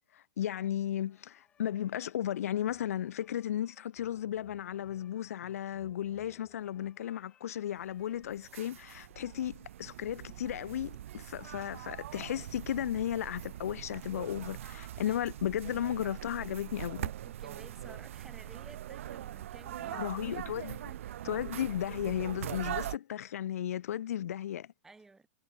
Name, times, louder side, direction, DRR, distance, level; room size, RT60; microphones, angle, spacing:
voice 1, 0.1-17.1 19.9-20.8 21.2-24.7, left 11 dB, 85° left, 0.8 m, -35 dB
sound 1, 1.0-8.9, left 8 dB, 15° left, 4.6 m, -65 dB
sound 2, 7.9-23.0, right 12 dB, 65° right, 0.7 m, -42 dB
voice 2, 17.2-21.0 24.8-25.3, right 3 dB, 5° right, 2.0 m, -55 dB
supercardioid pair, 180°, 8 cm